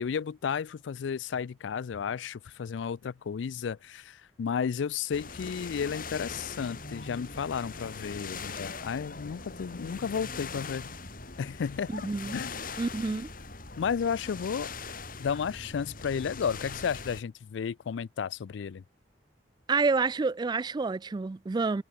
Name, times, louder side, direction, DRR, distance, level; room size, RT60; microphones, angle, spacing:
voice 1, 0.0-10.9 11.4-11.9 12.3-12.5 13.8-14.7 15.2-18.8, left 6 dB, 80° left, 0.4 m, -33 dB
sound 1, 5.1-17.2, left 4 dB, 50° left, 4.0 m, -41 dB
voice 2, 11.9-12.3 12.8-13.3 19.7-21.8, right 4 dB, 25° right, 0.3 m, -28 dB
head